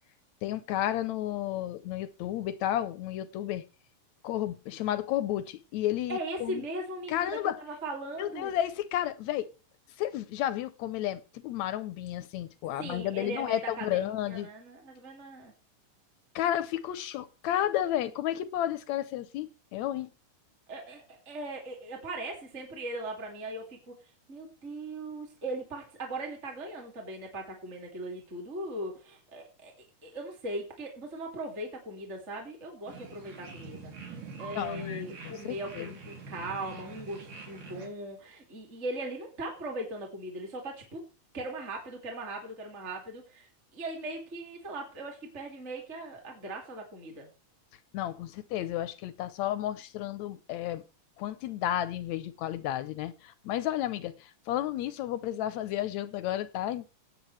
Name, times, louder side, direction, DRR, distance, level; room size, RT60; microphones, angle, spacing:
voice 1, 0.4-3.6 4.2-6.6 7.1-7.6 8.2-9.5 10.0-14.5 16.4-20.1 34.6-35.9 47.9-50.8 51.2-56.9, left 12 dB, 75° left, 1.8 m, -32 dB
voice 2, 6.1-8.5 12.8-15.5 20.7-24.0 24.3-29.7 30.0-33.9 34.4-41.1 41.3-47.3, right 1 dB, 25° right, 2.5 m, -39 dB
sound 1, 32.9-37.9, right 4 dB, 85° right, 4.6 m, -45 dB
17.0 x 9.0 x 3.3 m
omnidirectional pair, 3.6 m